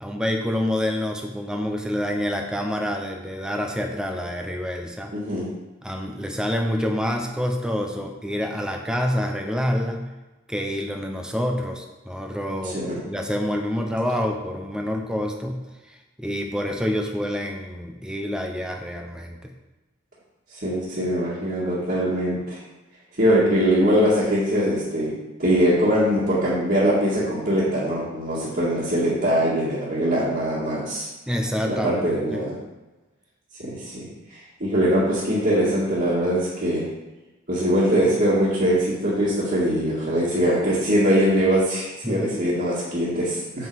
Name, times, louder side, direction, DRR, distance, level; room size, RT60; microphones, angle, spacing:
voice 1, 0.0-5.1 5.8-10.1 10.5-12.8 13.1-15.6 15.9-19.5 31.3-32.4 42.0-42.5, equal, 5° right, 2 dB, 0.7 m, -27 dB
voice 2, 5.1-5.5 12.6-13.0 20.5-22.6 23.2-25.1 25.4-31.1 31.6-32.6 33.6-34.1 34.3-36.9 37.5-43.7, equal, 45° right, -10 dB, 1.9 m, -22 dB
7.7 x 5.5 x 4.7 m, 1.1 s
head